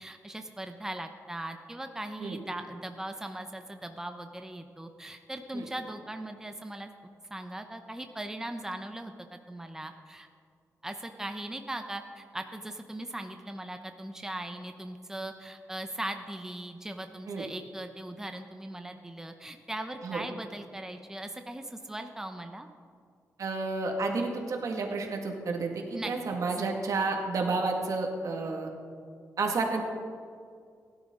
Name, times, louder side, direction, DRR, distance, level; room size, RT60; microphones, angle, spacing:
voice 1, 0.0-6.9 7.3-10.3 10.8-22.7 25.9-26.1, right 1 dB, 10° right, 6 dB, 0.8 m, -39 dB
voice 2, 23.4-28.7 29.4-29.8, right 3 dB, 65° right, 1 dB, 1.9 m, -31 dB
17.0 x 11.5 x 3.8 m, 2.2 s
cardioid pair, 95°, 6 cm